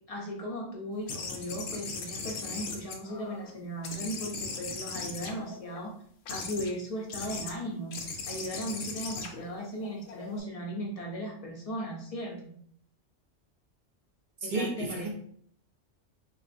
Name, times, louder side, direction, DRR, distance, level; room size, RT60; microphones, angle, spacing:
voice 1, 0.1-6.0 6.3-12.6 14.4-15.0, equal, 40° left, -1 dB, 0.5 m, -37 dB
sound 1, 1.1-3.5 3.8-5.8 6.3-6.7 7.1-7.5 7.9-10.4, left 4 dB, 90° left, 1.0 m, -38 dB
voice 2, 14.4-15.1, right 2 dB, 50° right, 0 dB, 0.6 m, -32 dB
3.7 x 2.4 x 2.5 m, 0.62 s
omnidirectional pair, 1.3 m